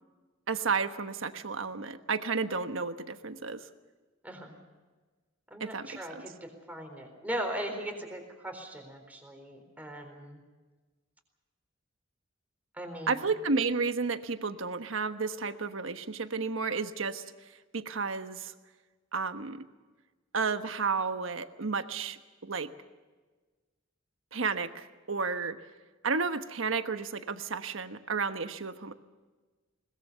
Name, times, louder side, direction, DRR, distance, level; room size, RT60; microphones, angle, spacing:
voice 1, 0.5-3.7 5.6-6.2 13.1-17.2 17.7-18.5 19.1-19.7 20.3-22.7 24.3-25.6 26.0-28.9, right 4 dB, 80° right, 9 dB, 1.3 m, -32 dB
voice 2, 4.2-4.6 5.5-10.4 12.7-13.2, right 1 dB, 10° right, 4 dB, 4.0 m, -39 dB
22.0 x 20.5 x 6.9 m, 1.3 s
head